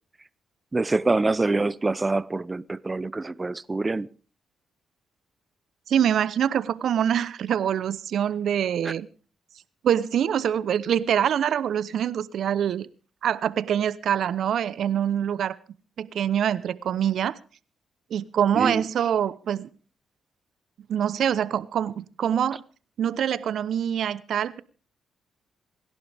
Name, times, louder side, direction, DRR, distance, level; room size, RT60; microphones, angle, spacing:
voice 1, 0.7-4.1 8.8-8.9 18.6-18.8, right 3 dB, 25° right, 0.7 m, -25 dB
voice 2, 5.9-9.1 9.8-12.9 13.2-15.6 16.0-17.4 18.1-19.7 20.9-22.6 23.0-24.6, right 9 dB, 70° right, 0.8 m, -25 dB
27.5 x 11.5 x 3.5 m
supercardioid pair, 50°, 0 cm